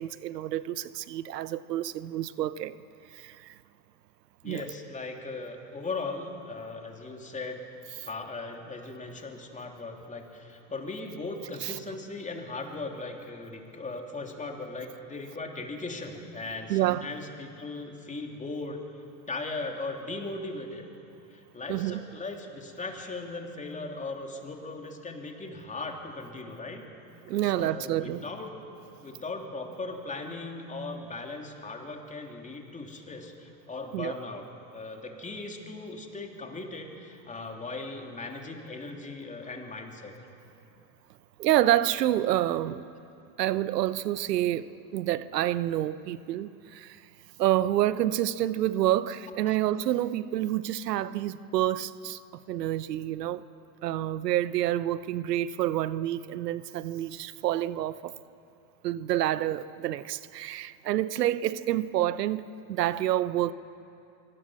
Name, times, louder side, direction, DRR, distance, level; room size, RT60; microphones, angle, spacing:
voice 1, 0.0-2.8 3.1-3.5 4.4-4.6 11.6-11.8 16.7-17.1 21.7-22.0 27.2-28.2 33.9-34.1 41.4-42.9 43.4-47.0 47.4-52.2 52.5-53.4 53.8-58.1 58.8-63.5, right 13 dB, 90° right, 0.8 m, -28 dB
voice 2, 4.4-7.6 8.0-18.8 19.3-20.8 21.3-26.8 27.4-28.5 29.0-34.5 34.7-40.1 49.4-49.6, left 3 dB, 15° left, 3.1 m, -38 dB
23.5 x 18.0 x 7.5 m
hypercardioid pair, 105°, 47 cm